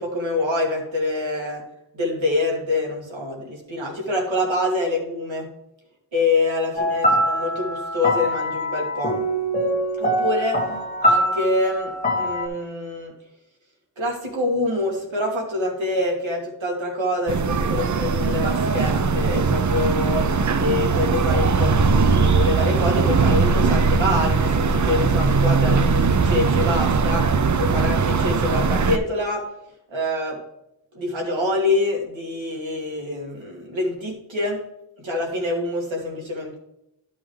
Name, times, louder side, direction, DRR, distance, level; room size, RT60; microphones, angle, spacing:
voice 1, 0.0-1.6 1.9-5.5 6.1-9.2 10.0-10.6 11.0-13.1 14.0-20.3 20.6-29.5 29.9-30.4 30.9-34.6 35.0-36.6, left 2 dB, 80° right, 0 dB, 2.7 m, -25 dB
sound 1, 6.8-12.5, equal, 20° left, 1.8 m, -23 dB
sound 2, 17.3-29.0, right 4 dB, 40° right, 0.5 m, -20 dB
12.0 x 5.7 x 3.3 m, 0.83 s
wide cardioid pair, 140°, 46 cm